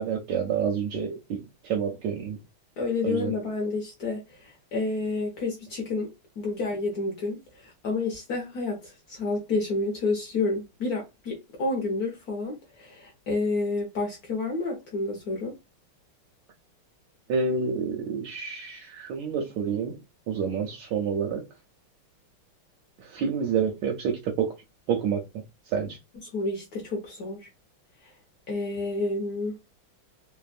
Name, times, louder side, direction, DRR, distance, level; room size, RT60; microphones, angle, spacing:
voice 1, 0.0-2.4 3.0-3.3 17.3-19.9 20.3-21.4 23.1-24.5 24.9-25.2 25.7-26.0, right 6 dB, 75° right, 1.1 m, -28 dB
voice 2, 2.8-15.5 26.2-27.5 28.5-29.6, left 3 dB, 60° left, 1.0 m, -30 dB
3.4 x 2.1 x 2.4 m
omnidirectional pair, 2.3 m